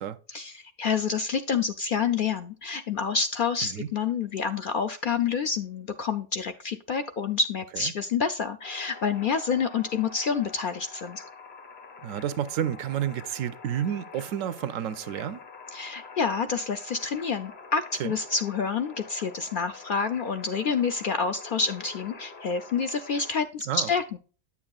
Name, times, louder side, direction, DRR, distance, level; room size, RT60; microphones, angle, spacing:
voice 1, 0.3-11.2 15.7-24.2, left 5 dB, 65° left, 0.5 m, -28 dB
sound 1, 8.6-23.4, left 4 dB, 45° left, 1.1 m, -46 dB
voice 2, 12.0-15.4 18.0-18.2 23.7-23.9, right 10 dB, 85° right, 1.0 m, -30 dB
9.4 x 7.2 x 2.3 m
omnidirectional pair, 1.3 m